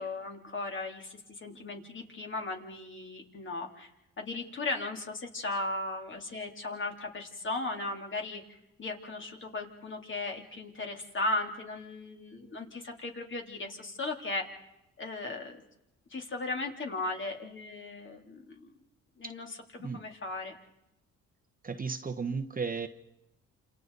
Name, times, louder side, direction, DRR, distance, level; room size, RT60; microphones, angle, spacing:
voice 1, 0.0-3.9 4.2-8.4 8.8-14.4 15.0-15.6 16.1-18.7 19.2-20.5, left 2 dB, 40° left, 2 dB, 3.4 m, -37 dB
voice 2, 21.6-22.9, right 5 dB, 30° right, 8 dB, 1.2 m, -34 dB
29.0 x 27.5 x 4.0 m, 0.87 s
cardioid pair, 90°, 30 cm